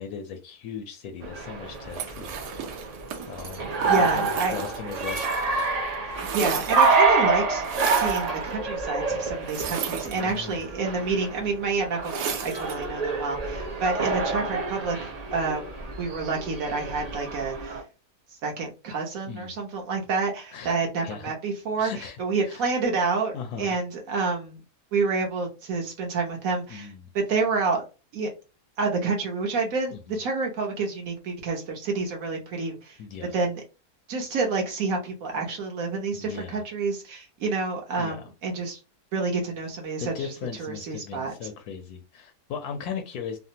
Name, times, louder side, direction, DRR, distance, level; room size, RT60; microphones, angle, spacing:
voice 1, 0.0-2.5 3.3-5.2 9.1-9.3 10.0-10.7 16.9-17.1 19.2-19.6 20.5-20.7 21.0-21.3 21.8-22.6 23.3-23.8 26.7-27.1 29.9-30.2 33.0-33.3 36.1-36.6 38.0-38.3 40.0-43.4, left 7 dB, 75° left, 5 dB, 1.1 m, -38 dB
sound 1, 1.2-17.8, right 4 dB, 45° right, 0.5 m, -28 dB
sound 2, 1.9-5.7 5.9-7.1 7.6-8.3 9.4-10.6 12.0-12.8, right 7 dB, 90° right, 1.2 m, -34 dB
voice 2, 3.9-4.6 6.0-7.7 7.9-15.6 16.0-17.8 18.4-21.9 22.2-24.6 24.9-27.8 28.1-28.3 28.8-33.0 33.3-33.6 34.1-38.8 39.1-40.3 40.6-41.3, right 4 dB, 65° right, 0 dB, 1.2 m, -28 dB
3.3 x 2.1 x 2.7 m, 0.30 s
omnidirectional pair, 1.7 m